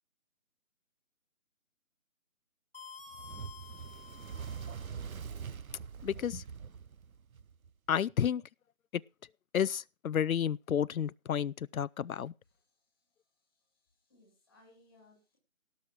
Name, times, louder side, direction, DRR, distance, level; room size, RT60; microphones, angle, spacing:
sound 1, 2.7-5.1, left 6 dB, 45° left, 1.0 m, -51 dB
Fire, 3.1-7.7, right 6 dB, 85° right, 0.8 m, -43 dB
voice 1, 6.0-6.4 7.9-8.4 8.9-9.0 9.5-12.3, left 9 dB, 85° left, 0.6 m, -31 dB
voice 2, 13.6-15.4, left 2 dB, ahead, 2.0 m, -64 dB
18.0 x 6.4 x 4.5 m
figure-of-eight pair, 175°, 41 cm